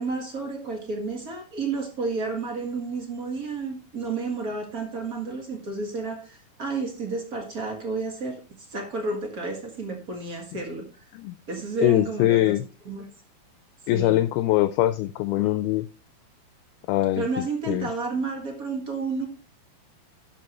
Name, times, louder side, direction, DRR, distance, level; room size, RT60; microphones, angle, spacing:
voice 1, 0.0-8.4 8.7-10.9 11.5-12.6 12.8-13.0 13.9-14.2 17.2-19.3, right 3 dB, 75° right, 2 dB, 0.8 m, -31 dB
voice 2, 11.8-12.6 13.9-15.9 16.9-17.2 17.7-17.9, left 15 dB, 80° left, 12 dB, 2.3 m, -22 dB
12.0 x 7.4 x 3.0 m, 0.34 s
omnidirectional pair, 4.8 m